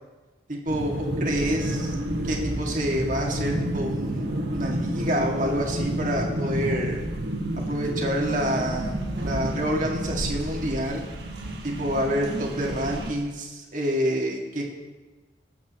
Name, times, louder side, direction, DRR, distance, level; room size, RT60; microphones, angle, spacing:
voice 1, 0.5-1.9 2.2-4.3 4.5-7.0 7.7-11.0 11.6-14.6, equal, 40° right, -1 dB, 2.1 m, -27 dB
sound 1, 0.7-13.1, right 1 dB, 60° right, 1.6 m, -30 dB
20.5 x 8.6 x 3.1 m, 1.2 s
head